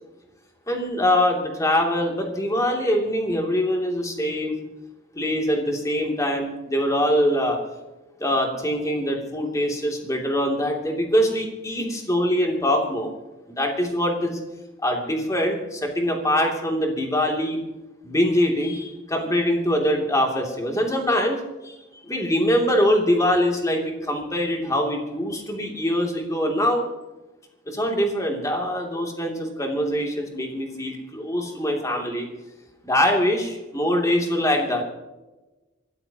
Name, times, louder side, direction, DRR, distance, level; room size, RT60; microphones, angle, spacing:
voice 1, 0.7-4.6 5.2-7.6 8.2-13.1 13.5-14.4 14.8-17.6 18.0-21.4 21.6-21.7 22.0-26.8 27.7-32.3 32.8-34.8, equal, 15° left, 1 dB, 2.8 m, -23 dB
26.0 x 13.5 x 3.0 m, 1.1 s
head